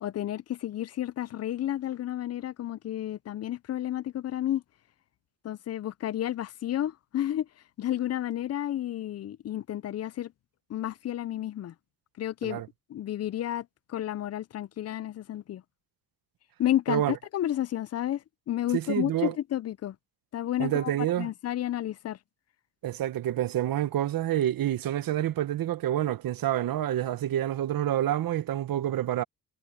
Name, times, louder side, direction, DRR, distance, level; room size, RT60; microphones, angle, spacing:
voice 1, 0.0-4.6 5.4-7.5 7.8-10.3 10.7-11.7 12.2-12.6 12.9-15.6 16.6-20.0 20.3-20.9 21.2-22.2, left 12 dB, 45° left, 0.4 m, -31 dB
voice 2, 18.7-19.3 20.6-21.3 22.8-29.2, right 12 dB, 65° right, 1.0 m, -28 dB
cardioid pair, 90°, 37 cm